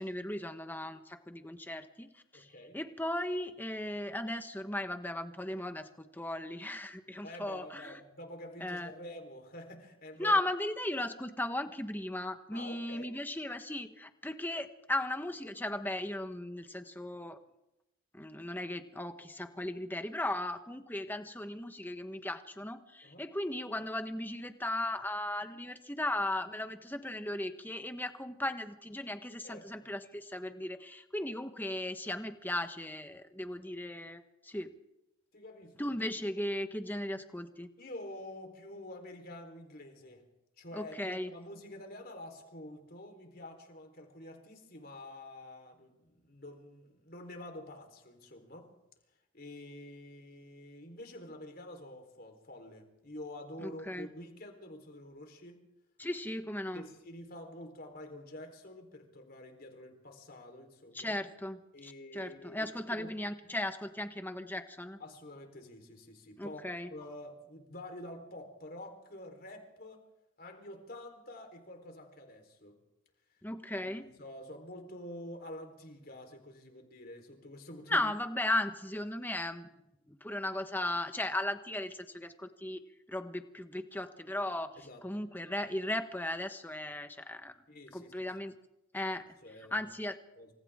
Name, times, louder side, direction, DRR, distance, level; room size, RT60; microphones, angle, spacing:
voice 1, 0.0-8.0 8.6-8.9 10.2-17.4 18.1-34.7 35.8-37.7 40.7-41.3 53.6-54.1 56.0-56.9 60.9-65.0 66.4-66.9 73.4-74.1 77.9-79.7 80.1-84.7 85.0-87.6 87.9-88.5 88.9-89.2 89.7-90.2, left 1 dB, 10° left, 8 dB, 1.2 m, -36 dB
voice 2, 2.3-2.8 7.2-10.3 12.5-13.1 23.0-23.2 29.4-29.9 35.3-35.8 37.8-40.3 40.6-48.7 49.3-55.6 56.7-61.1 61.7-63.1 65.0-66.6 66.9-70.1 70.4-72.8 73.8-78.1 84.8-85.0 87.7-88.3 89.4-89.9 90.4-90.5, left 1 dB, 45° left, 4 dB, 4.2 m, -48 dB
28.5 x 26.5 x 3.7 m, 0.90 s
head